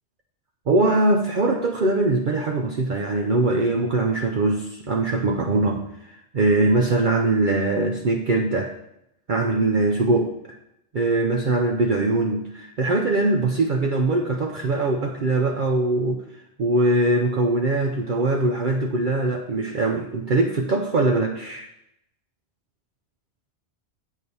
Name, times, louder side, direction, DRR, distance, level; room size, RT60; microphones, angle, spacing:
voice 1, 0.7-8.7 9.3-10.5 10.9-21.7, right 2 dB, 50° right, 2 dB, 0.8 m, -22 dB
8.3 x 4.7 x 7.0 m, 0.81 s
omnidirectional pair, 1.2 m